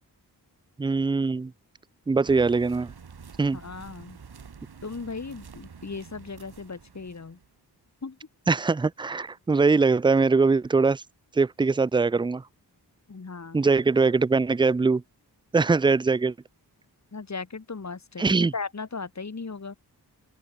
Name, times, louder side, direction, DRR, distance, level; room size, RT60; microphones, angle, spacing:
voice 1, 0.8-1.5 2.1-2.9 3.4-3.6 8.5-11.0 11.4-12.4 13.5-15.0 15.5-16.3 18.2-18.5, right 4 dB, 15° right, 0.4 m, -22 dB
sound 1, 2.2-7.5, right 6 dB, 70° right, 4.8 m, -47 dB
voice 2, 3.5-4.2 4.8-7.4 8.0-8.2 13.1-13.7 17.1-19.8, left 4 dB, 45° left, 3.9 m, -37 dB
open air
wide cardioid pair, 85°, 40 cm